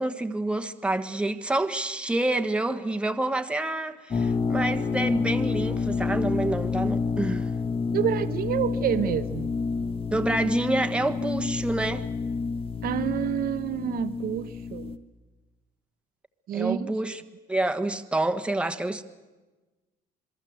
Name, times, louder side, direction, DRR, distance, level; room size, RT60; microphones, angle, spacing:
voice 1, 0.0-7.5 10.1-12.0 16.5-17.2 17.5-19.0, right 2 dB, 5° right, 1.4 m, -28 dB
sound 1, 4.1-15.0, left 4 dB, 35° left, 1.4 m, -28 dB
voice 2, 7.9-9.5 12.8-15.0 16.5-16.9, right 10 dB, 60° right, 1.0 m, -28 dB
27.0 x 21.5 x 7.9 m
cardioid pair, 110°, 17 cm